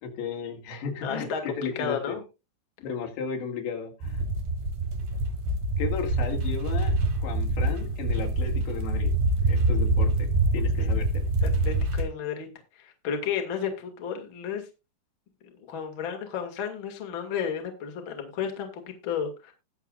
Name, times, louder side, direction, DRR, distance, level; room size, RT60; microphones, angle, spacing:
voice 1, 0.0-2.2 2.8-4.3 5.8-9.1 9.5-11.2, left 6 dB, 75° left, 1 dB, 4.3 m, -34 dB
voice 2, 1.0-1.4 1.7-2.2 10.8-10.9 11.4-12.5 12.8-14.6 15.7-19.5, left 7 dB, 45° left, 4 dB, 1.7 m, -32 dB
sound 1, 4.0-12.0, right 2 dB, 60° right, 2.9 m, -25 dB
19.5 x 6.9 x 2.4 m, 0.27 s
omnidirectional pair, 5.4 m